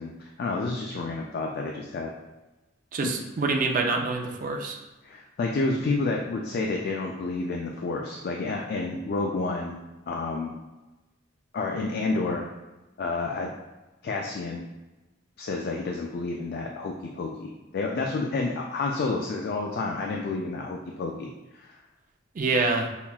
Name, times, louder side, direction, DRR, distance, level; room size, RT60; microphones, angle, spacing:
voice 1, 0.0-2.1 5.0-9.8 10.1-10.5 11.5-12.4 13.0-13.5 14.0-14.7 15.4-21.3 21.5-21.7, left 3 dB, 50° left, 0 dB, 0.3 m, -30 dB
voice 2, 2.9-4.8 22.3-22.9, right 3 dB, 45° right, 2 dB, 0.4 m, -26 dB
5.5 x 2.3 x 2.3 m, 1.1 s
head